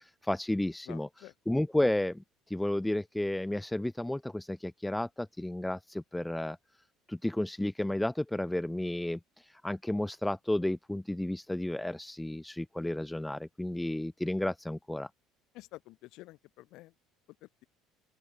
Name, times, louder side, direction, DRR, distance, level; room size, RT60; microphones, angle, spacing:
voice 1, 0.0-1.1 1.5-2.2 2.5-6.6 7.1-9.2 9.6-15.1, left 1 dB, 5° left, 2.0 m, -32 dB
voice 2, 0.9-1.3 15.5-16.9 17.4-17.6, left 18 dB, 60° left, 5.7 m, -50 dB
open air
cardioid pair, 155°, 0 cm